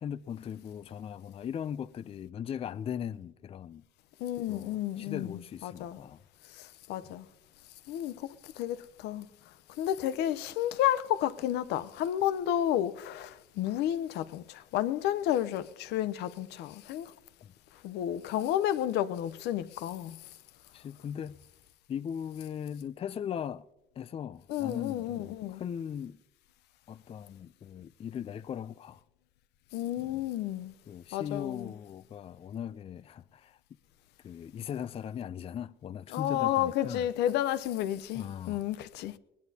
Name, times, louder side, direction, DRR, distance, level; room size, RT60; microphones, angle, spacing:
voice 1, 0.0-3.8 4.5-6.2 17.4-17.5 20.7-21.4 21.9-23.7 24.0-26.2 26.9-29.0 30.0-30.2 30.9-33.6 34.2-37.1 38.1-38.6, left 8 dB, 35° left, 0.4 m, -39 dB
voice 2, 4.2-6.0 6.5-7.3 7.9-9.3 9.8-17.1 17.8-20.2 24.5-25.6 29.7-30.7 31.1-31.7 36.1-39.2, left 12 dB, 85° left, 0.7 m, -31 dB
20.0 x 19.0 x 2.8 m
cardioid pair, 110°, 17 cm